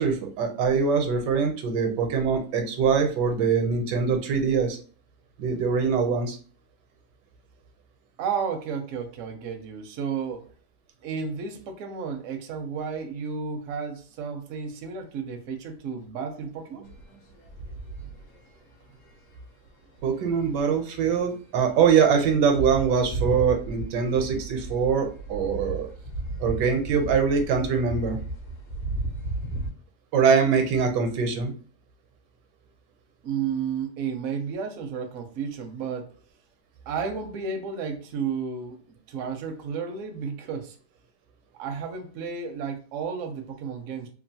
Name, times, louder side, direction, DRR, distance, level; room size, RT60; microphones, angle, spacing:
voice 1, 0.0-4.8 5.4-6.4 20.0-25.9 26.4-28.2 30.1-31.5, right 6 dB, 85° right, 5 dB, 1.3 m, -23 dB
voice 2, 8.2-10.4 11.0-16.8 33.2-36.1 36.9-40.8 41.6-44.1, right 6 dB, 70° right, 5 dB, 0.8 m, -32 dB
sound 1, 16.9-18.5 19.1-19.3 20.0-20.6 20.9-21.0 21.2-21.3 21.5-29.7, right 2 dB, 60° left, 1.0 m, -34 dB
3.0 x 2.4 x 2.7 m, 0.40 s
omnidirectional pair, 1.8 m